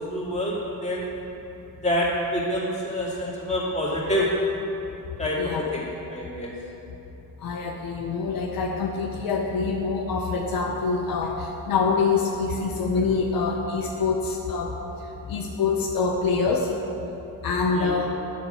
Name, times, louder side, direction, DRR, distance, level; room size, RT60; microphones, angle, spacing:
voice 1, 0.1-0.6 0.8-1.2 1.8-4.3 5.2-5.8 6.1-6.5 17.7-18.0, equal, 20° left, -6 dB, 2.2 m, -27 dB
voice 2, 7.4-14.7 15.3-16.7 17.4-18.2, left 4 dB, 65° left, 1 dB, 0.8 m, -25 dB
9.3 x 6.2 x 5.6 m, 3.0 s
cardioid pair, 120°, 37 cm